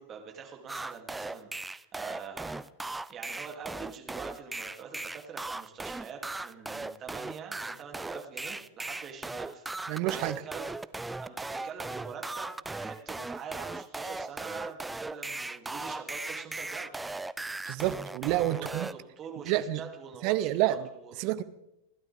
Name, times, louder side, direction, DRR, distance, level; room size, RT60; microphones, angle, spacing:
voice 1, 0.0-2.6 3.1-10.8 11.2-17.0 18.4-21.1, right 6 dB, 25° right, 2 dB, 2.9 m, -45 dB
sound 1, 0.7-18.9, right 2 dB, 5° right, 0.4 m, -38 dB
voice 2, 9.9-10.4 17.7-18.9 19.5-19.8 20.2-20.7 21.2-21.4, right 15 dB, 45° right, 14 dB, 0.8 m, -28 dB
29.5 x 12.0 x 3.6 m, 0.89 s
figure-of-eight pair, 90°, 0 cm